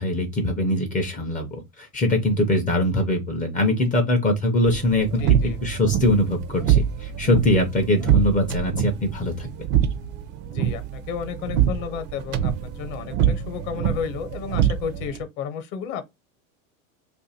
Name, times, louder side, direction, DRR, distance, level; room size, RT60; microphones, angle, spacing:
voice 1, 0.0-5.2 5.6-9.5, left 1 dB, 20° left, 0.5 m, -22 dB
sound 1, 4.7-15.2, right 10 dB, 45° right, 0.5 m, -25 dB
voice 2, 5.2-5.6 10.5-16.1, left 7 dB, 50° left, 1.0 m, -32 dB
2.5 x 2.5 x 4.1 m
supercardioid pair, 130°, 42 cm